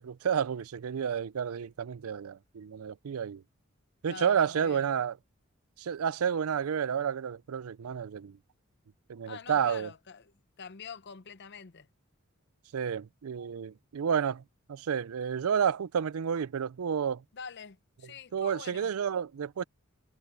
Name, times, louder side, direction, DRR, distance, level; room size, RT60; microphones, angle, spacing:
voice 1, 0.0-3.4 4.0-5.1 5.8-8.4 9.1-9.9 12.7-14.4 14.7-17.2 18.3-19.6, right 7 dB, 85° right, 0.4 m, -30 dB
voice 2, 4.1-5.0 9.3-11.9 17.3-18.9, left 6 dB, 55° left, 0.7 m, -46 dB
head